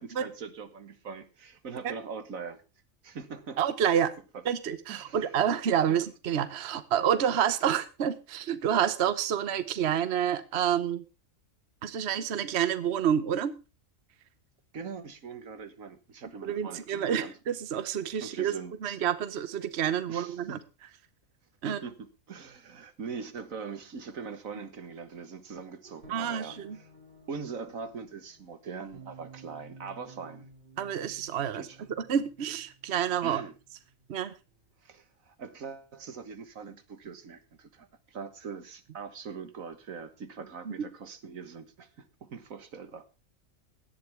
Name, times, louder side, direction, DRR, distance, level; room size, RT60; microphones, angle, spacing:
voice 1, 0.0-2.6 3.0-3.6 4.3-4.4 4.9-5.3 5.9-6.0 14.7-17.3 18.2-19.0 20.1-20.6 21.6-26.9 27.3-30.5 31.5-31.9 33.2-33.5 34.8-43.0, right 5 dB, 85° right, 1.9 m, -42 dB
voice 2, 3.6-4.1 4.4-11.0 11.8-13.5 16.4-18.5 18.8-20.6 21.6-21.8 26.1-26.8 30.8-31.6 32.1-33.4 34.1-34.3 40.7-40.8, right 9 dB, 55° right, 1.1 m, -28 dB
sound 1, 25.8-34.6, right 3 dB, 40° right, 2.6 m, -54 dB
17.0 x 11.0 x 3.5 m
omnidirectional pair, 1.4 m